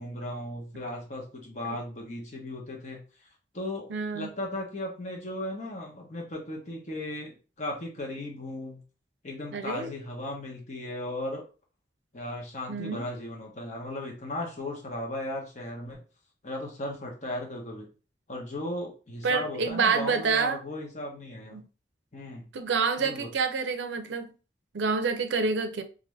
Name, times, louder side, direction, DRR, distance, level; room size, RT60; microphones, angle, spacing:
voice 1, 0.0-3.0 3.5-8.8 9.2-11.4 12.1-16.0 16.4-17.9 18.3-21.6 22.1-22.5 23.0-23.3, left 1 dB, 40° left, 0.9 m, -36 dB
voice 2, 3.9-4.3 9.5-9.9 12.7-13.1 19.2-20.6 21.5-21.6 22.5-24.3 24.7-25.8, right 5 dB, 90° right, 0.5 m, -28 dB
2.7 x 2.5 x 3.2 m
head